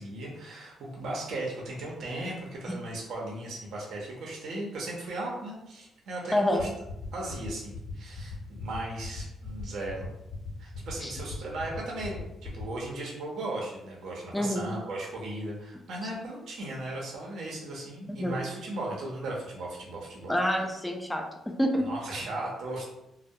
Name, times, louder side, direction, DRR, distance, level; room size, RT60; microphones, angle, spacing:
voice 1, 0.0-6.7 7.1-10.1 10.6-20.4 21.8-22.8, right 2 dB, 70° right, -2 dB, 0.7 m, -37 dB
voice 2, 6.3-6.7 11.0-11.1 14.3-14.7 18.1-18.4 20.3-21.8, equal, 10° left, 2 dB, 0.4 m, -27 dB
sound 1, 6.6-12.6, left 6 dB, 55° left, 0.8 m, -39 dB
2.2 x 2.1 x 2.7 m, 0.86 s
cardioid pair, 90°, 0 cm